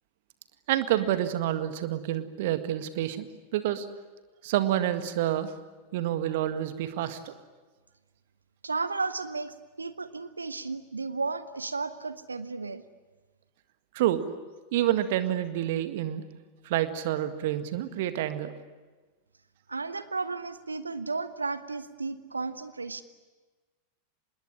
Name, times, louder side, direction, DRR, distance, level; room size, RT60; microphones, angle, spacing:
voice 1, 0.7-3.9 4.4-5.5 5.9-7.3 13.9-14.2 14.7-16.2 16.6-18.5, right 12 dB, 50° right, 10 dB, 1.9 m, -28 dB
voice 2, 8.6-12.8 19.7-23.0, right 4 dB, 80° right, 13 dB, 0.9 m, -33 dB
26.0 x 21.0 x 9.9 m, 1.3 s
figure-of-eight pair, 90°, 0 cm